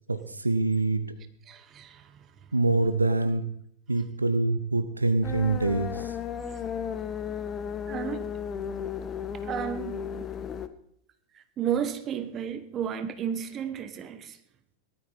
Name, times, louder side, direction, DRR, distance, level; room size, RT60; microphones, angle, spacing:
voice 1, 0.1-1.1 2.5-3.5 3.9-6.1, right 3 dB, 80° right, 12 dB, 0.8 m, -25 dB
voice 2, 1.5-2.1 7.9-8.3 9.4-10.0 11.6-14.4, right 8 dB, 30° right, 10 dB, 1.4 m, -32 dB
sound 1, 5.2-10.7, left 7 dB, 25° left, 1.0 m, -34 dB
18.5 x 12.5 x 4.2 m, 0.70 s
figure-of-eight pair, 90°, 0 cm